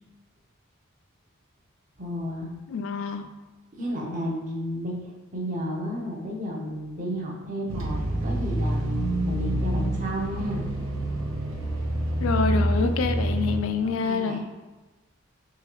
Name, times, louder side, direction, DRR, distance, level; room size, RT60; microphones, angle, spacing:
voice 1, 2.0-2.5 3.8-10.6 14.0-14.4, equal, 40° right, -1 dB, 0.6 m, -32 dB
voice 2, 2.7-3.3 12.2-14.4, left 4 dB, 75° left, 8 dB, 0.3 m, -26 dB
sound 1, 7.7-13.6, right 1 dB, 85° right, 0.7 m, -27 dB
3.8 x 3.3 x 2.9 m, 1.2 s
head